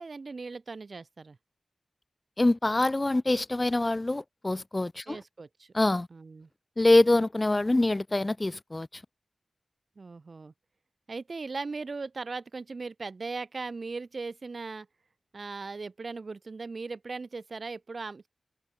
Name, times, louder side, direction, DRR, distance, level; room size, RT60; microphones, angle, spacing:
voice 1, 0.0-1.4 5.1-5.7 6.1-6.5 10.0-10.5 11.1-14.9 15.3-18.3, right 4 dB, 60° right, 1.2 m, -38 dB
voice 2, 2.4-5.2 5.7-6.1 6.8-8.9, left 2 dB, 30° left, 0.6 m, -24 dB
wide cardioid pair, 65°, 0 cm